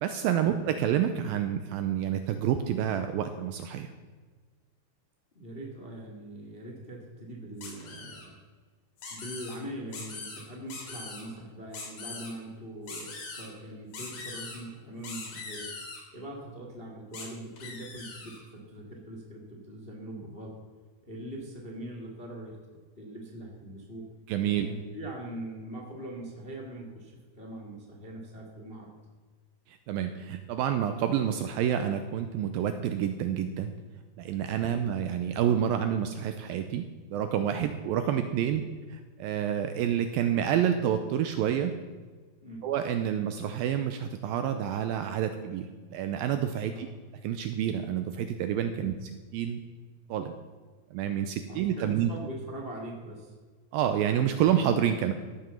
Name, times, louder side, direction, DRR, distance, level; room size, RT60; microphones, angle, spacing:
voice 1, 0.0-3.9 24.3-24.7 29.7-33.7 34.2-38.6 38.9-41.7 42.6-46.9 47.2-48.9 49.3-49.6 50.1-50.4 50.9-52.1 53.7-55.1, right 9 dB, 80° right, 8 dB, 2.2 m, -28 dB
voice 2, 5.3-8.3 9.1-15.7 16.1-20.5 21.0-24.1 24.4-28.9 37.5-37.7 38.6-38.7 42.4-42.7 46.6-46.8 48.8-48.9 51.5-53.3, right 1 dB, 30° left, 0 dB, 1.0 m, -42 dB
sound 1, 7.6-8.3 9.0-9.6 9.9-10.4 10.7-11.2 11.7-12.3 12.9-13.5 13.9-14.6 15.0-16.0 17.1-17.3 17.6-18.4, left 4 dB, 60° left, 4.8 m, -41 dB
14.5 x 9.0 x 7.0 m, 1.4 s
omnidirectional pair, 4.7 m